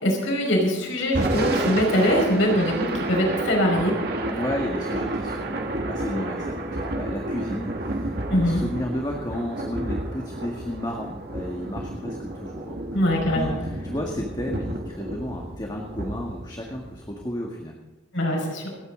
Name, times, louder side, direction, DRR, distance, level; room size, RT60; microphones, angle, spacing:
voice 1, 0.0-4.0 8.3-8.6 12.9-13.5 18.1-18.7, equal, 90° left, 0 dB, 5.3 m, -22 dB
Thunder / Rain, 1.0-17.3, right 1 dB, 55° right, 2.0 m, -31 dB
voice 2, 4.3-6.7 7.0-13.0 13.3-13.5 13.8-17.8, left 1 dB, 20° left, 0 dB, 1.8 m, -32 dB
27.5 x 9.7 x 3.9 m, 1.1 s
head